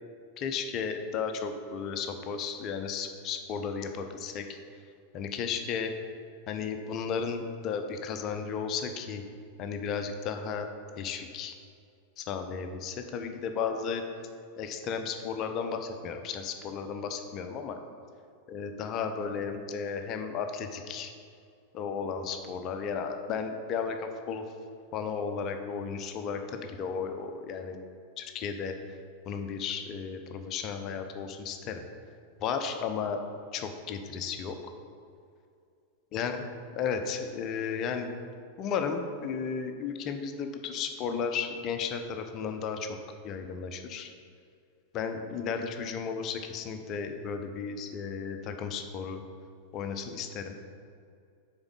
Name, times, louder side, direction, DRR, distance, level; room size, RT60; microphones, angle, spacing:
voice 1, 0.4-4.4 5.1-5.9 6.5-9.2 9.6-10.7 11.0-11.5 12.2-14.0 14.6-17.8 18.5-21.1 21.7-24.4 24.9-27.8 28.2-28.7 29.3-31.8 32.4-33.2 33.5-34.6 36.1-36.4 36.8-38.1 38.6-43.0 43.2-44.1 44.9-49.2 49.7-50.6, left 6 dB, 35° left, 6 dB, 0.6 m, -34 dB
7.1 x 4.6 x 5.2 m, 2.4 s
figure-of-eight pair, 90°, 0 cm